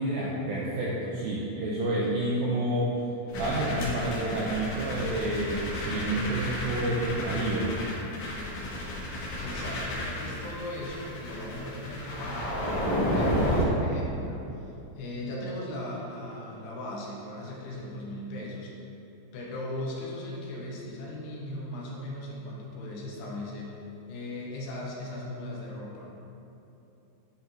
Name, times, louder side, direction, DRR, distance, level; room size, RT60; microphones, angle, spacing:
voice 1, 0.0-2.9 3.4-7.8, right 1 dB, 85° right, -5 dB, 2.1 m, -29 dB
sound 1, 3.3-13.7, left 1 dB, 55° left, 2.3 m, -31 dB
voice 2, 9.4-18.7 19.3-26.1, left 1 dB, 75° left, -3 dB, 2.9 m, -38 dB
10.0 x 5.0 x 2.7 m, 2.9 s
omnidirectional pair, 4.9 m